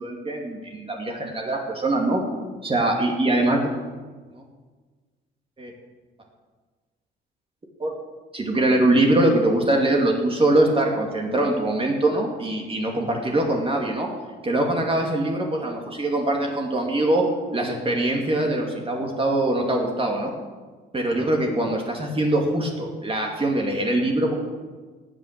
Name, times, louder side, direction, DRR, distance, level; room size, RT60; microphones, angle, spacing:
voice 1, 0.0-2.2 2.6-3.7 4.3-4.4 5.6-5.7 7.8-7.9 8.3-14.1 14.4-20.3 20.9-24.3, right 1 dB, 30° right, 0 dB, 2.5 m, -23 dB
18.5 x 6.3 x 6.8 m, 1.4 s
cardioid pair, 90°, 20 cm